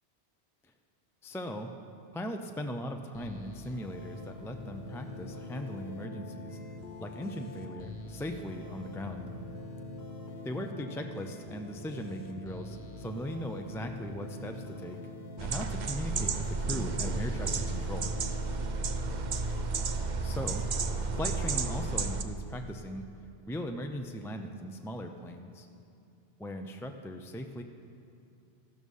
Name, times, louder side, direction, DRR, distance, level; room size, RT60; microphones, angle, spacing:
voice 1, 1.2-1.7 2.1-6.6 7.0-9.3 10.4-15.0 15.4-18.1 20.2-20.6 21.2-23.1 23.5-25.7 26.4-27.6, equal, 5° left, 4 dB, 0.3 m, -38 dB
sound 1, 3.1-21.8, left 2 dB, 65° left, 1.3 m, -44 dB
sound 2, 15.4-22.2, right 4 dB, 50° right, 0.7 m, -32 dB
14.0 x 12.5 x 5.5 m, 2.5 s
omnidirectional pair, 1.2 m